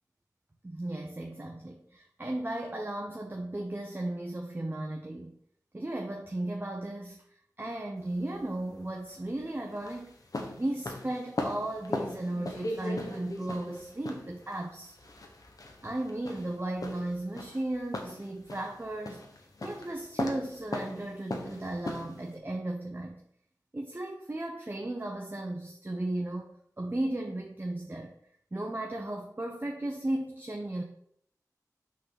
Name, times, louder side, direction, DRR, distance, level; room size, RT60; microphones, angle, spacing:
voice 1, 0.6-5.3 5.7-7.2 7.6-10.1 10.6-14.9 15.8-19.3 19.6-23.2 23.7-26.5 26.8-28.1 28.5-30.8, right 1 dB, 35° right, 1 dB, 1.0 m, -35 dB
sound 1, 8.0-22.4, left 2 dB, 65° left, 1.2 m, -39 dB
6.2 x 4.0 x 5.9 m, 0.68 s
wide cardioid pair, 50°, 7 cm